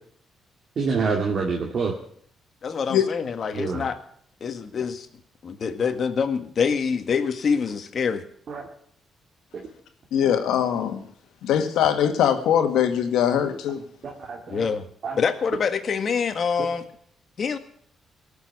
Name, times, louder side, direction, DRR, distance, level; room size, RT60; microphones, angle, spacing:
voice 1, 0.8-1.9 3.5-3.8 8.5-8.6 14.0-14.7 15.0-15.2, right 4 dB, 55° right, -1 dB, 2.5 m, -26 dB
voice 2, 2.6-4.0 4.4-5.1 5.4-8.2 14.5-14.9 15.1-16.9 17.4-17.6, left 6 dB, 50° left, 8 dB, 1.8 m, -25 dB
voice 3, 10.1-11.0 11.4-13.8, left 9 dB, 85° left, 6 dB, 2.0 m, -21 dB
18.0 x 7.1 x 9.7 m, 0.63 s
cardioid pair, 90°, 0 cm